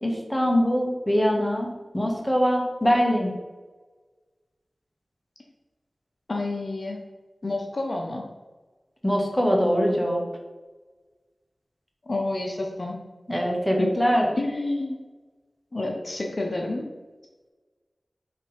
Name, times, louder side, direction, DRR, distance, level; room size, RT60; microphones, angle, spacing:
voice 1, 0.0-1.7 1.9-3.3 9.0-10.2 13.3-14.3, equal, 10° left, 0 dB, 1.6 m, -22 dB
voice 2, 6.3-7.0 7.4-8.2 12.1-13.0 13.8-13.9 14.4-15.0 15.7-16.9, left 2 dB, 55° left, 0 dB, 0.8 m, -29 dB
6.2 x 3.5 x 4.3 m, 1.3 s
cardioid pair, 40°, 0 cm